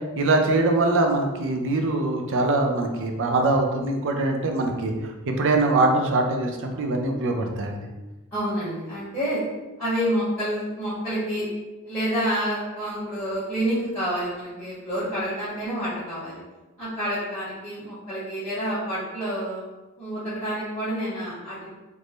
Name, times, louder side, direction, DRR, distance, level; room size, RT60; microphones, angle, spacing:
voice 1, 0.2-4.9 5.3-7.8, right 2 dB, 60° right, 3 dB, 0.5 m, -23 dB
voice 2, 8.3-9.4 9.8-11.5 11.8-16.4 16.8-19.6 20.0-21.7, equal, 10° left, -14 dB, 1.5 m, -28 dB
3.5 x 2.6 x 3.1 m, 1.1 s
head